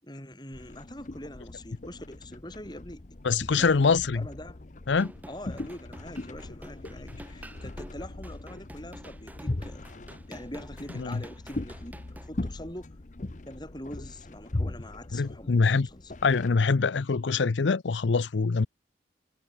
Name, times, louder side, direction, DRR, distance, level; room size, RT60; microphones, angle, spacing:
voice 1, 0.0-4.6 5.3-9.9 10.3-13.0 13.5-16.1, left 1 dB, 25° left, 7.3 m, -44 dB
sound 1, 0.5-16.5, left 2 dB, 40° left, 0.8 m, -39 dB
voice 2, 3.2-4.2 4.9-5.1 11.0-11.2 15.1-15.9 16.2-18.7, left 4 dB, 85° left, 0.6 m, -24 dB
sound 2, 4.9-12.3, right 1 dB, 10° right, 2.7 m, -49 dB
head